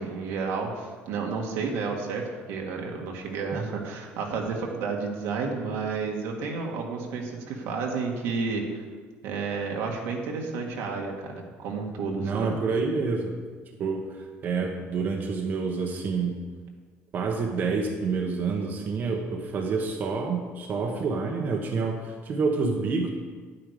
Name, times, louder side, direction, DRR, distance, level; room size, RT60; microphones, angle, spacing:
voice 1, 0.0-8.8 9.2-12.5, right 4 dB, 80° right, 0 dB, 1.8 m, -31 dB
voice 2, 12.2-13.3 13.8-16.4 17.1-23.1, right 4 dB, 45° right, 1 dB, 1.2 m, -28 dB
10.0 x 8.9 x 5.0 m, 1.5 s
cardioid pair, 130°, 4 cm